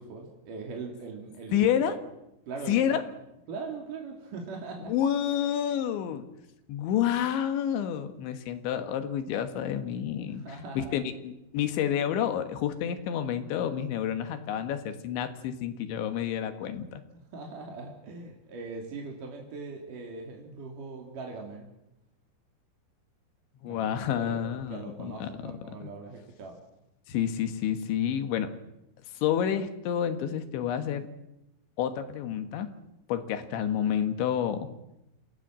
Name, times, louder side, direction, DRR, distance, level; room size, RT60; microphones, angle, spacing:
voice 1, 0.0-2.0 2.5-3.0 3.5-4.9 10.3-11.0 17.3-21.7 23.6-26.6, right 4 dB, 50° right, 1 dB, 4.0 m, -41 dB
voice 2, 1.5-2.0 2.7-3.0 4.8-6.3 6.7-10.4 10.8-17.0 23.6-25.9 27.1-28.5 29.2-31.1 31.8-32.7 33.1-34.7, left 9 dB, 80° left, 8 dB, 3.9 m, -29 dB
28.0 x 18.0 x 7.6 m, 0.87 s
omnidirectional pair, 5.2 m